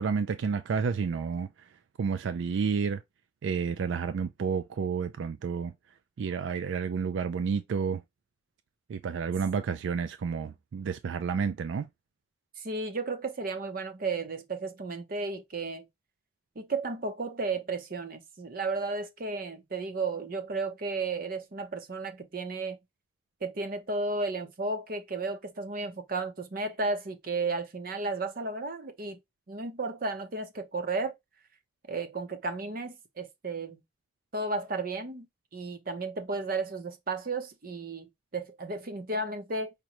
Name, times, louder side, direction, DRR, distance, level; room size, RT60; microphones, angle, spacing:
voice 1, 0.0-1.5 2.0-3.0 3.4-5.7 6.2-8.0 8.9-11.9, right 6 dB, 85° right, 0.4 m, -30 dB
voice 2, 12.6-15.9 16.6-22.8 23.4-29.2 29.5-31.1 31.9-33.8 34.3-35.3 35.5-39.7, right 3 dB, 50° right, 0.7 m, -33 dB
5.1 x 2.2 x 2.9 m
head